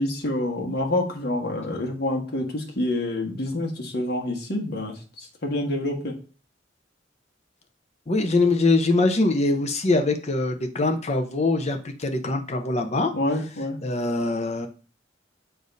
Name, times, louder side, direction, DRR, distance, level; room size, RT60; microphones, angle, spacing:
voice 1, 0.0-6.2 13.1-13.8, left 1 dB, 55° left, 1 dB, 1.4 m, -27 dB
voice 2, 8.1-13.1 13.8-14.7, left 2 dB, 35° left, 5 dB, 0.7 m, -23 dB
6.8 x 2.7 x 5.2 m, 0.38 s
head